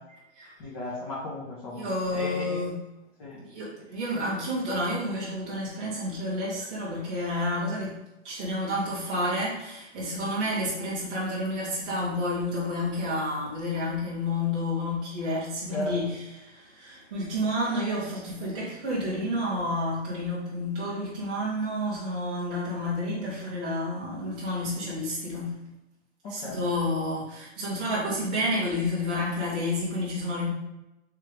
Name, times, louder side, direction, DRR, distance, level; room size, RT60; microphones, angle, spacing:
voice 1, 0.6-2.6 3.2-3.4 4.1-4.2 15.7-15.9 26.2-26.6, left 2 dB, 30° left, -7 dB, 0.9 m, -35 dB
voice 2, 1.7-2.8 3.4-8.0 8.2-25.6 26.3-30.5, left 1 dB, 10° right, -9 dB, 0.3 m, -30 dB
3.7 x 3.2 x 3.2 m, 0.94 s
hypercardioid pair, 165°, 35 cm